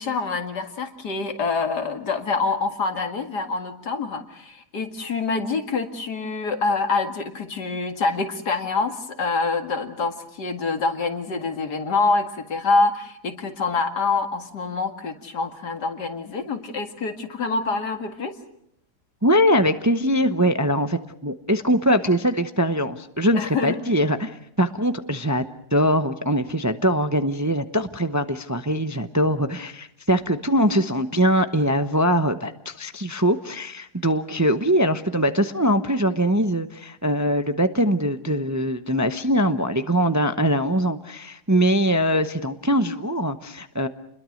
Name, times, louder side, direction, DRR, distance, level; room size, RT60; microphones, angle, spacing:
voice 1, 0.0-18.4 23.3-23.8, left 4 dB, 85° left, 6 dB, 2.6 m, -26 dB
voice 2, 19.2-25.5 25.7-43.9, equal, 15° right, 9 dB, 0.6 m, -22 dB
29.0 x 22.0 x 6.4 m, 0.74 s
omnidirectional pair, 1.7 m